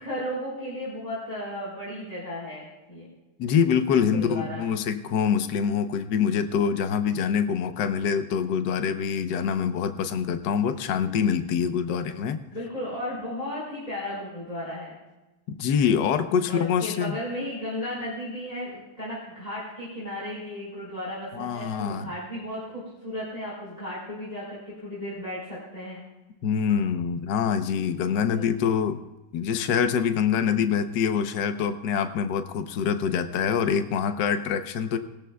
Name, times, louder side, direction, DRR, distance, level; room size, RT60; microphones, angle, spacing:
voice 1, 0.0-3.1 4.1-4.6 11.9-12.1 12.5-14.9 16.5-26.0 28.3-28.4, left 1 dB, 20° left, -8 dB, 4.9 m, -35 dB
voice 2, 3.4-12.4 15.6-17.2 21.3-22.1 26.4-29.0 29.3-35.0, left 7 dB, 65° left, 8 dB, 1.4 m, -25 dB
20.5 x 14.0 x 2.3 m, 1.0 s
omnidirectional pair, 2.1 m